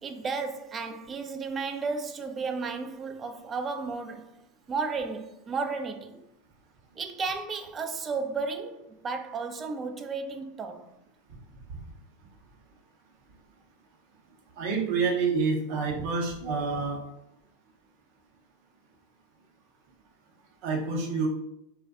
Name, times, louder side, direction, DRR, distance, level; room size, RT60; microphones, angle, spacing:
voice 1, 0.0-4.4 4.7-6.3 7.0-10.9, right 4 dB, 25° right, 0.3 m, -33 dB
voice 2, 14.6-17.1 20.6-21.3, right 4 dB, 60° right, 0.6 m, -28 dB
2.5 x 2.1 x 2.3 m
hypercardioid pair, 100°, 0 cm